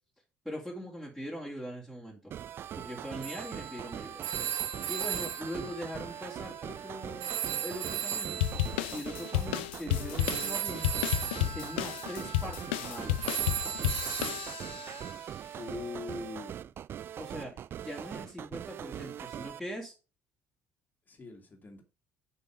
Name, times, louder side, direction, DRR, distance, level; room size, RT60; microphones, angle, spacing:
voice 1, 0.4-2.3 2.8-4.2 4.5-4.6 4.9-7.3 7.6-8.4 8.9-10.9 11.5-13.3 17.1-17.5 17.8-19.9, equal, ahead, 3.0 m, -41 dB
sound 1, 2.3-19.6, right 10 dB, 40° right, 0.3 m, -42 dB
Telephone, 3.2-6.9 7.2-15.1, right 9 dB, 60° right, 1.2 m, -37 dB
sound 2, 8.4-14.9, left 13 dB, 65° left, 0.5 m, -32 dB
voice 2, 15.6-16.7 21.1-21.8, left 3 dB, 30° left, 2.3 m, -42 dB
7.0 x 5.4 x 5.0 m
figure-of-eight pair, 55°, 6 cm